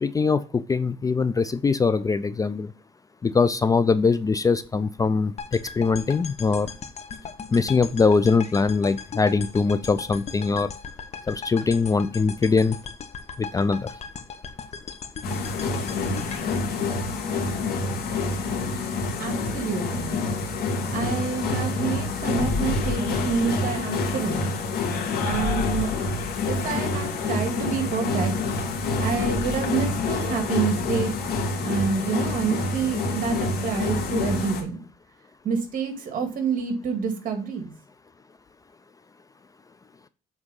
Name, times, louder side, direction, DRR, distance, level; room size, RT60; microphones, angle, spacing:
voice 1, 0.0-2.7 3.2-6.7 7.5-10.7 11.3-12.8 13.4-13.9, left 4 dB, 20° left, 13 dB, 0.4 m, -22 dB
sound 1, 5.4-17.6, left 6 dB, 40° left, 1.0 m, -38 dB
sound 2, 15.2-34.6, left 3 dB, 70° left, 2.2 m, -27 dB
voice 2, 19.2-20.2 20.9-24.5 25.2-25.9 26.5-28.3 29.0-31.1 31.6-34.8 35.4-37.7, right 5 dB, 55° right, 5 dB, 2.0 m, -28 dB
8.0 x 3.6 x 5.4 m, 0.35 s
cardioid pair, 110°, 17 cm